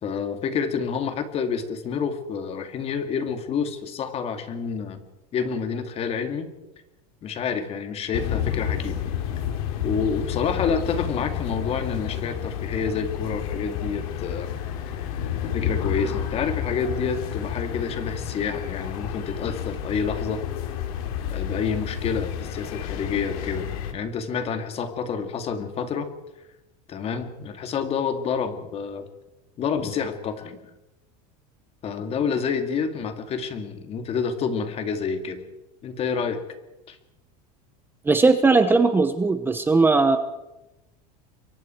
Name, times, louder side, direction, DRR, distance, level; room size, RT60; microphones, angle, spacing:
voice 1, 0.0-5.0 5.3-6.5 7.2-9.0 9.8-14.5 15.4-20.4 21.3-26.1 26.9-29.1 29.6-30.6 31.8-35.4 35.8-36.4 36.9-37.0, left 6 dB, 30° left, 7 dB, 2.5 m, -28 dB
sound 1, 8.1-23.9, left 9 dB, 70° left, 3.4 m, -30 dB
voice 2, 38.1-40.2, right 3 dB, 10° right, 9 dB, 1.0 m, -18 dB
28.5 x 23.0 x 4.7 m, 0.98 s
supercardioid pair, 145°, 19 cm